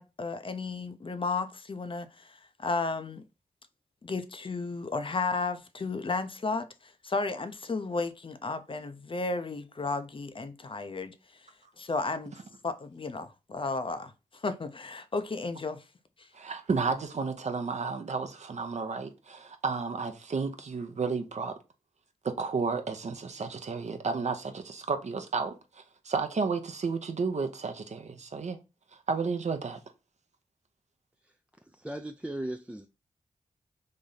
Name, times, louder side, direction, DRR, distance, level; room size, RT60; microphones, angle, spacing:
voice 1, 0.0-3.2 4.0-11.5 11.8-12.3 12.6-15.8 16.2-16.3, left 3 dB, 40° left, 0.6 m, -33 dB
voice 2, 16.3-21.5 22.2-28.6 29.1-29.8, right 4 dB, 55° right, 0.7 m, -32 dB
voice 3, 31.7-32.9, right 1 dB, 10° right, 0.4 m, -37 dB
3.2 x 2.6 x 3.8 m
cardioid pair, 50°, 14 cm